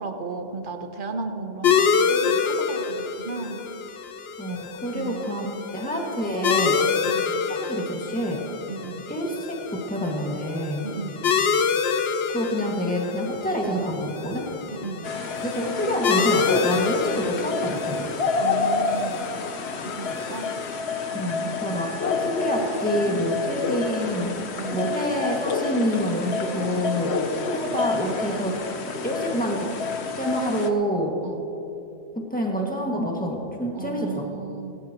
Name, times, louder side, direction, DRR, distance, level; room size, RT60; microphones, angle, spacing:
voice 1, 0.0-3.6 4.9-5.2 7.0-7.4 8.7-9.1 10.8-11.3 14.7-15.1 18.4-19.3 19.8-20.5 24.6-25.0 26.5-27.1 31.2-31.5 33.7-34.8, right 4 dB, 55° right, 6 dB, 1.2 m, -35 dB
sound 1, 1.6-20.8, left 6 dB, 70° left, 1.0 m, -27 dB
voice 2, 4.4-5.5 5.7-6.8 7.5-8.4 9.1-10.8 12.3-14.5 15.4-18.1 21.1-24.3 24.7-27.1 27.5-28.7 29.0-29.7 30.1-31.1 32.3-34.3, equal, 10° left, -1 dB, 2.0 m, -27 dB
sound 2, 15.0-30.7, left 4 dB, 85° left, 1.2 m, -29 dB
18.5 x 18.0 x 3.0 m, 2.9 s
omnidirectional pair, 1.1 m